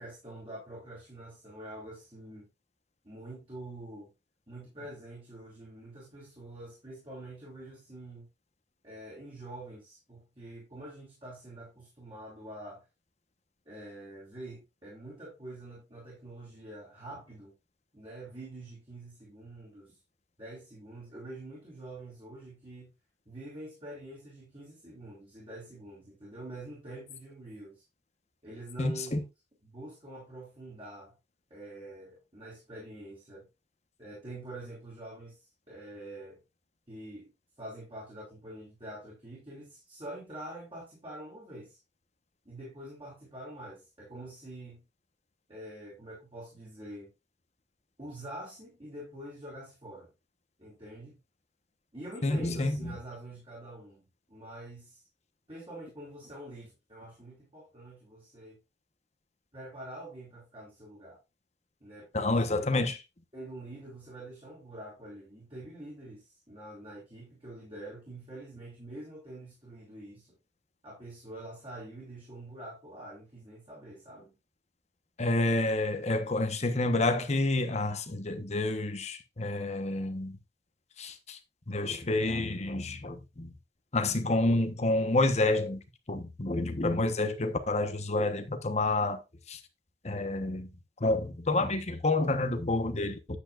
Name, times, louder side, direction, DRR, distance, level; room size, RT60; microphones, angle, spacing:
voice 1, 0.0-2.5 3.0-4.1 4.5-8.3 8.8-12.8 13.6-17.5 17.9-19.9 20.4-22.9 23.3-27.8 28.4-29.2 29.6-31.2 31.5-33.5 34.0-36.4 36.9-37.3 37.6-41.8 42.4-44.8 45.5-47.1 48.0-50.1 50.6-51.2 51.9-55.0 55.5-58.6 59.5-61.2 61.8-62.7 63.3-70.4 70.8-74.3, right 1 dB, 30° right, 4.4 m, -46 dB
voice 2, 28.8-29.2 52.2-52.8 62.1-62.9 75.2-80.4 81.0-81.4 81.7-83.5 83.9-85.8 86.1-89.2 89.5-89.6 90.0-90.7 91.0-93.4, left 2 dB, 40° left, 1.2 m, -29 dB
10.5 x 8.4 x 2.5 m
head